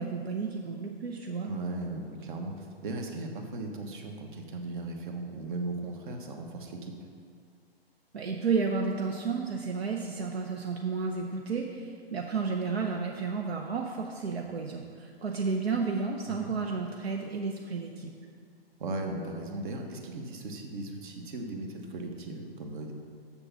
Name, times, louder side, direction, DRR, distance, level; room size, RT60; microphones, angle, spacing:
voice 1, 0.0-1.5 8.1-18.1, right 4 dB, 75° right, 1 dB, 0.8 m, -32 dB
voice 2, 1.4-6.9 16.2-16.5 18.8-22.9, right 2 dB, 55° right, 4 dB, 1.2 m, -37 dB
7.0 x 6.9 x 5.5 m, 2.1 s
figure-of-eight pair, 125°, 31 cm